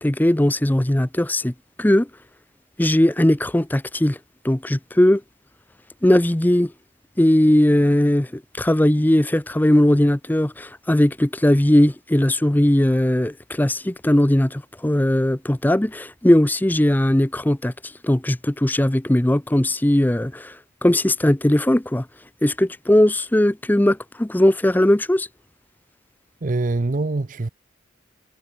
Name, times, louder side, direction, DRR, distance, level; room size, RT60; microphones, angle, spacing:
voice 1, 0.0-1.5 1.8-2.1 2.8-4.2 4.4-5.2 6.0-6.7 7.2-22.1 22.4-25.3, left 1 dB, 10° left, 0.6 m, -19 dB
voice 2, 26.4-27.5, right 2 dB, 45° right, 0.6 m, -24 dB
head